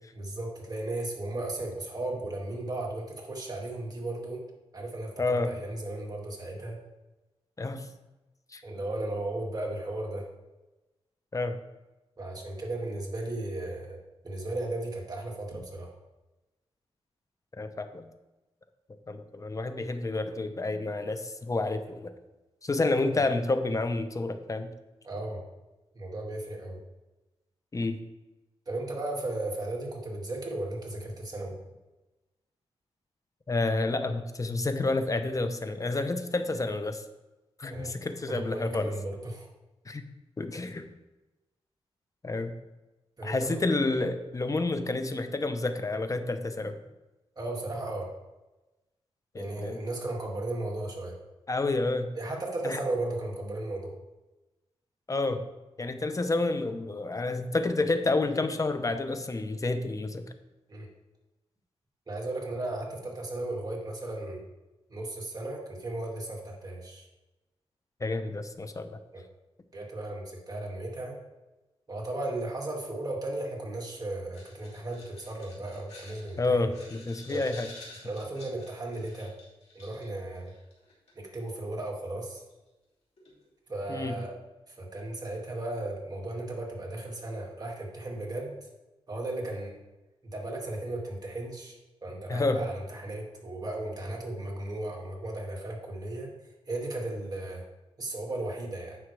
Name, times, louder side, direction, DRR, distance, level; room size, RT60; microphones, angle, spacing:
voice 1, 0.1-4.4 4.7-6.8 8.6-10.3 12.2-14.0 14.2-15.9 25.0-25.4 25.9-26.8 28.7-31.5 37.7-37.9 38.3-39.5 43.2-43.6 47.4-48.1 49.4-51.2 52.2-54.0 60.7-60.9 62.1-64.4 64.9-67.1 69.1-69.2 69.7-71.2 71.9-76.7 77.3-77.4 78.0-79.3 79.7-80.5 81.2-82.4 83.7-84.3 84.7-88.5 89.1-89.7 90.3-91.7 92.0-96.3 96.7-97.6 98.0-99.0, right 2 dB, 35° right, -1 dB, 2.2 m, -35 dB
voice 2, 5.2-5.5 7.6-7.9 8.5-8.6 11.3-11.6 17.6-18.1 19.1-22.1 22.6-24.7 27.7-28.0 33.5-37.0 37.6-38.9 39.9-40.1 40.4-40.9 42.2-42.5 43.2-46.7 49.3-49.8 51.5-52.1 52.6-52.8 55.1-55.4 55.8-60.2 68.0-68.9 76.4-77.7 83.9-84.1 92.3-92.6, left 2 dB, 30° left, 9 dB, 0.8 m, -29 dB
sound 1, 74.3-81.3 82.5-82.6 83.2-83.5 84.0-84.3, left 2 dB, 75° left, 2.9 m, -51 dB
9.6 x 6.0 x 3.4 m, 1.1 s
cardioid pair, 70°, 11 cm